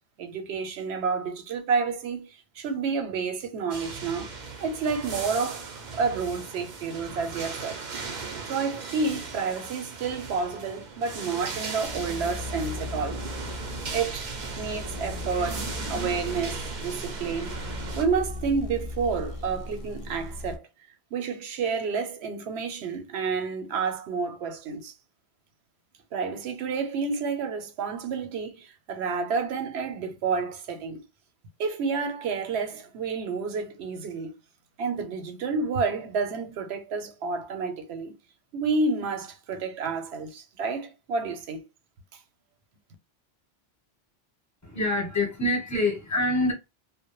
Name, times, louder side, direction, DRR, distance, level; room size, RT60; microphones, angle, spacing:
voice 1, 0.2-4.3 4.6-7.8 8.5-13.2 13.9-20.6 21.1-24.9 26.1-31.0 31.6-34.3 34.8-38.1 38.5-41.6, right 5 dB, 85° right, 0.9 m, -30 dB
sound 1, 3.7-18.1, right 4 dB, 55° right, 0.6 m, -37 dB
sound 2, 11.8-20.6, left 2 dB, 55° left, 0.4 m, -37 dB
voice 2, 44.6-46.5, left 1 dB, 15° left, 0.8 m, -25 dB
2.1 x 2.0 x 2.9 m
omnidirectional pair, 1.1 m